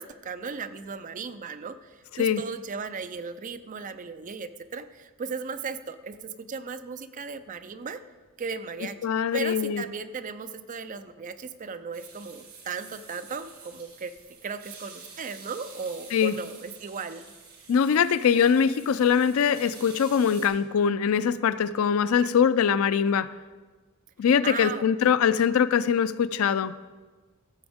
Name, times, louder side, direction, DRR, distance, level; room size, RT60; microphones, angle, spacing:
voice 1, 0.0-8.0 8.4-14.1 14.4-17.3 24.4-24.9, right 5 dB, 35° right, 10 dB, 0.4 m, -36 dB
voice 2, 9.0-9.8 16.1-16.3 17.7-23.3 24.2-26.7, left 7 dB, 70° left, 15 dB, 0.4 m, -22 dB
sound 1, 11.9-20.5, right 5 dB, 90° right, 3.3 m, -48 dB
15.0 x 7.0 x 3.5 m, 1.3 s
head